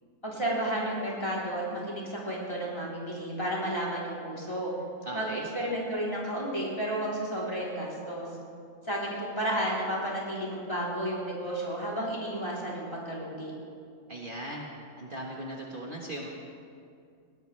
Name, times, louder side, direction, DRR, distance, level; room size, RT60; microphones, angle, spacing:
voice 1, 0.2-4.7 5.1-8.3 8.8-13.5, right 1 dB, 20° left, -6 dB, 3.6 m, -32 dB
voice 2, 5.0-5.5 14.1-14.7 15.0-16.3, right 1 dB, 40° right, -2 dB, 1.5 m, -38 dB
20.0 x 18.0 x 3.3 m, 2.4 s
omnidirectional pair, 1.4 m